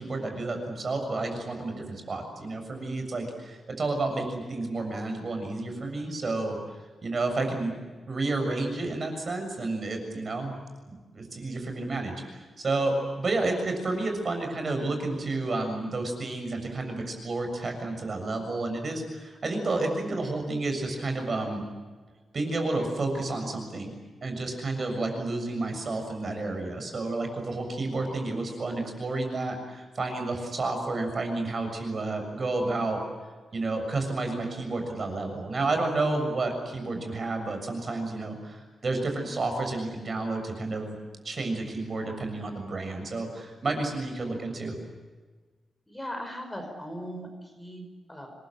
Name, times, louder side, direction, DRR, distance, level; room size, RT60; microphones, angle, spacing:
voice 1, 0.0-6.6 7.0-7.7 8.1-10.5 10.9-21.7 22.3-23.9 24.2-33.0 33.5-40.9 41.2-44.8, right 2 dB, 35° right, 5 dB, 6.9 m, -30 dB
voice 2, 45.9-48.3, equal, 10° left, 3 dB, 5.4 m, -39 dB
28.0 x 22.0 x 8.7 m, 1.4 s
wide cardioid pair, 170°, 0 cm